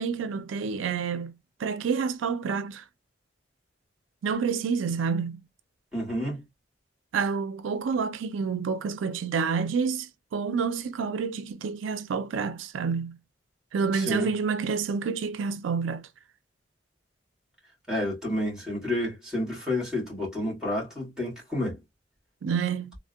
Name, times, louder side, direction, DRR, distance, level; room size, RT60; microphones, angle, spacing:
voice 1, 0.0-1.3 1.6-2.8 4.2-5.4 7.1-13.2 13.7-16.1 22.4-23.0, right 5 dB, 85° right, 0.4 m, -28 dB
voice 2, 5.9-6.4 13.9-14.3 17.9-21.8, left 1 dB, 5° right, 1.7 m, -30 dB
3.5 x 2.0 x 2.2 m
head